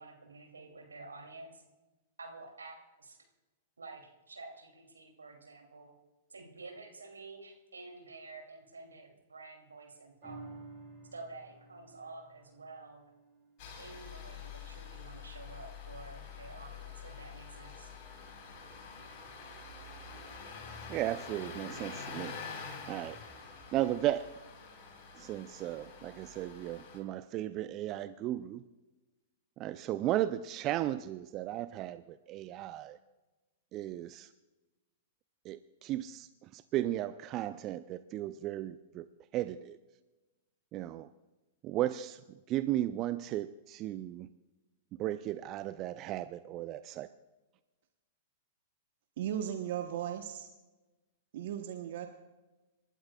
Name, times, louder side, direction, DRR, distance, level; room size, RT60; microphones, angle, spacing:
voice 1, 0.0-1.6 2.2-3.2 3.8-5.9 6.3-10.6 11.1-13.1 13.8-17.9, right 3 dB, 85° right, 2 dB, 2.6 m, -50 dB
sound 1, 10.2-16.9 17.3-17.4, right 3 dB, 20° right, 4.9 m, -55 dB
Engine starting, 13.6-27.0, left 5 dB, 45° left, 4.0 m, -47 dB
voice 2, 20.9-22.3 22.9-23.2 23.7-24.3 25.2-28.6 29.6-33.0 33.7-34.3 35.4-39.1 39.3-39.8 40.7-41.1 41.6-44.3 45.0-47.1, right 13 dB, 35° right, 13 dB, 0.4 m, -35 dB
voice 3, 49.2-50.5 51.3-52.1, right 10 dB, 60° right, 6 dB, 0.9 m, -36 dB
27.5 x 12.0 x 2.3 m, 1.1 s
figure-of-eight pair, 105°, 0 cm